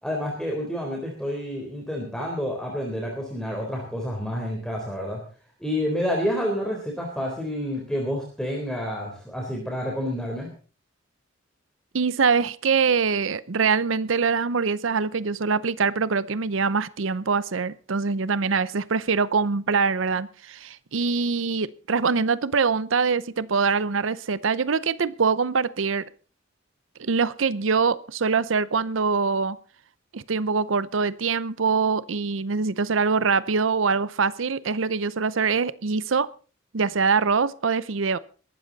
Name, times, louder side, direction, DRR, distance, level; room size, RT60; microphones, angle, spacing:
voice 1, 0.0-5.2 5.6-10.5, equal, 5° left, 0 dB, 3.8 m, -29 dB
voice 2, 11.9-26.0 27.0-29.6 30.1-36.3 36.7-38.2, right 5 dB, 85° right, 17 dB, 0.7 m, -24 dB
22.0 x 13.0 x 4.1 m, 0.39 s
head